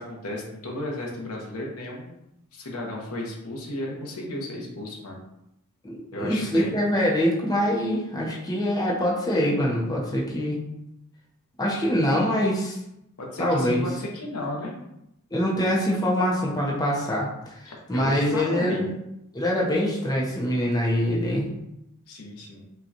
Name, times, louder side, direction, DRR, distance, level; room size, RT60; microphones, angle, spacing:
voice 1, 0.0-2.2 2.5-5.2 6.1-6.9 13.2-14.7 17.6-18.9 22.1-22.6, left 1 dB, 85° left, -1 dB, 0.9 m, -34 dB
voice 2, 5.8-10.7 11.6-12.8 13.4-13.9 15.3-18.9 19.3-21.5, equal, 20° left, -4 dB, 0.7 m, -24 dB
5.2 x 2.4 x 2.8 m, 0.83 s
head